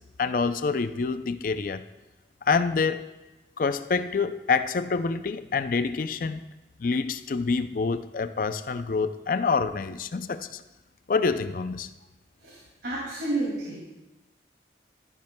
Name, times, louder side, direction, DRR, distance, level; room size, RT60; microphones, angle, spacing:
voice 1, 0.2-1.9 2.5-3.1 3.6-6.4 6.8-10.6 11.1-11.9, left 4 dB, 50° left, 11 dB, 0.4 m, -27 dB
voice 2, 12.4-13.9, right 2 dB, 70° right, -5 dB, 2.3 m, -31 dB
13.5 x 10.5 x 2.2 m, 1.1 s
head